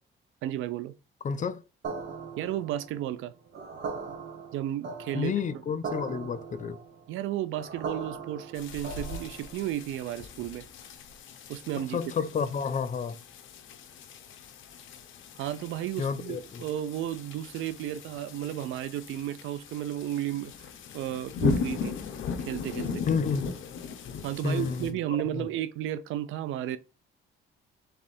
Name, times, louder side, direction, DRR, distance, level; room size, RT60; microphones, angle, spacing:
voice 1, 0.4-0.9 2.4-3.3 4.5-5.3 7.1-10.6 11.5-12.0 15.4-20.7 20.9-21.9 22.5-23.0 24.2-26.8, right 12 dB, 90° right, 0.5 m, -33 dB
voice 2, 1.2-1.6 5.1-6.8 11.9-13.2 16.0-16.6 23.1-23.6 24.4-24.9 25.3-25.5, left 6 dB, 40° left, 0.5 m, -30 dB
sound 1, 1.8-9.6, right 4 dB, 65° right, 1.7 m, -39 dB
sound 2, 8.6-24.9, left 5 dB, 80° left, 0.8 m, -37 dB
3.6 x 3.3 x 4.2 m
cardioid pair, 90°, 20 cm